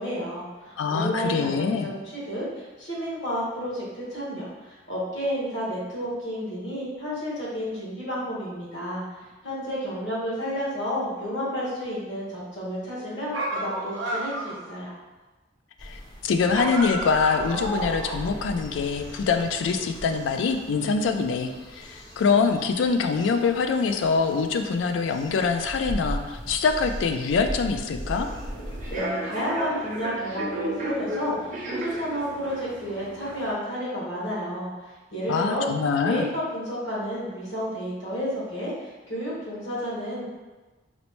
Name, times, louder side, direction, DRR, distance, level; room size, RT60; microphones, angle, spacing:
voice 1, 0.0-14.9 28.9-35.7 36.0-40.3, equal, 65° left, -7 dB, 1.3 m, -31 dB
voice 2, 0.8-1.9 15.8-28.3 35.3-36.3, left 5 dB, 85° left, 7 dB, 0.3 m, -24 dB
sound 1, 13.3-14.7 16.5-18.3, right 1 dB, 85° right, 0.6 m, -31 dB
sound 2, 15.8-29.0, equal, 25° left, 0.5 m, -39 dB
Human voice / Subway metro underground, 28.0-33.5, right 1 dB, 40° right, 0.5 m, -34 dB
4.1 x 2.1 x 3.0 m, 1.2 s
head